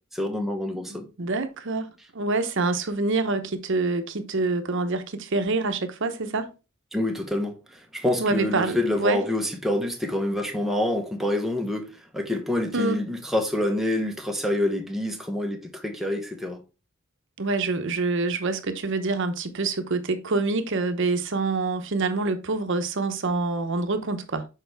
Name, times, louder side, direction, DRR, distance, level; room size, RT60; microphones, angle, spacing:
voice 1, 0.1-1.0 6.9-16.6, left 1 dB, ahead, 1.0 m, -27 dB
voice 2, 0.8-6.5 8.2-9.2 12.7-13.0 17.4-24.5, right 3 dB, 60° right, 0.8 m, -26 dB
6.7 x 4.7 x 3.4 m
head